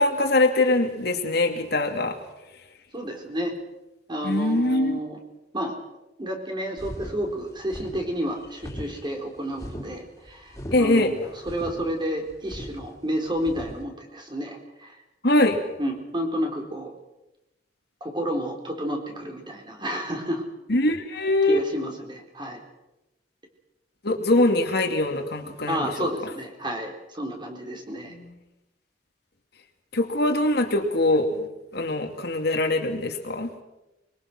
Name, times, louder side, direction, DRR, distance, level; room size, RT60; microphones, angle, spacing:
voice 1, 0.0-2.2 4.2-5.0 10.7-11.1 15.2-15.6 20.7-21.6 24.0-26.1 28.1-28.3 29.9-33.5, left 2 dB, 65° left, 4 dB, 2.6 m, -23 dB
voice 2, 2.9-3.5 4.1-5.2 5.5-5.7 6.2-15.0 15.8-16.9 18.0-20.4 21.5-22.6 25.7-28.1, equal, 25° right, 3 dB, 4.1 m, -31 dB
sound 1, 6.8-13.8, equal, 15° left, 3.8 m, -39 dB
24.0 x 22.5 x 6.2 m, 0.96 s
head